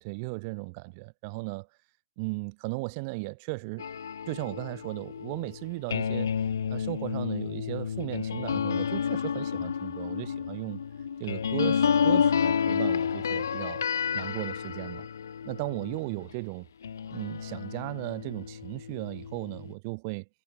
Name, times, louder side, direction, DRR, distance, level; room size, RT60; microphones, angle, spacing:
voice 1, 0.0-1.7 2.2-3.9 4.3-6.3 6.7-10.8 11.2-13.8 14.1-15.1 15.5-16.7 17.1-20.3, right 30 dB, 20° right, 2.9 m, -36 dB
sound 1, 3.8-16.3 16.8-19.7, left 7 dB, 50° left, 0.6 m, -30 dB
hypercardioid pair, 175°, 2 cm